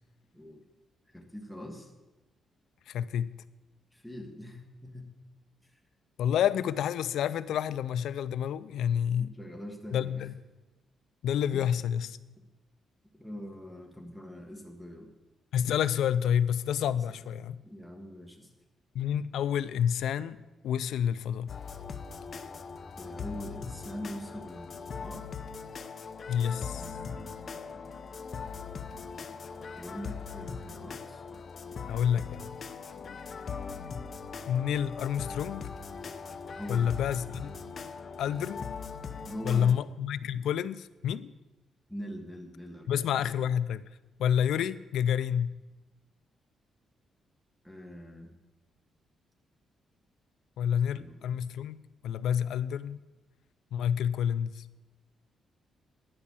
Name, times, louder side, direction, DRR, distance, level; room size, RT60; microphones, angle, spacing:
voice 1, 1.1-1.9 3.9-5.1 9.1-10.3 11.5-12.0 13.2-15.1 16.9-17.0 17.6-18.5 23.0-25.3 26.7-28.2 29.8-31.2 36.6-36.9 39.3-39.8 41.9-43.2 47.6-48.3 50.9-51.4, equal, ahead, 1.5 m, -43 dB
voice 2, 2.9-3.4 6.2-9.3 9.9-10.3 11.2-12.2 15.5-17.6 18.9-21.6 26.3-26.9 31.9-32.6 34.5-35.7 36.7-37.5 38.2-38.7 39.4-41.3 42.9-43.8 44.2-45.6 50.6-53.0 53.7-54.6, left 9 dB, 80° left, 0.4 m, -29 dB
sound 1, 21.5-39.7, left 5 dB, 40° left, 0.6 m, -40 dB
11.0 x 5.6 x 8.4 m
cardioid pair, 155°, 0 cm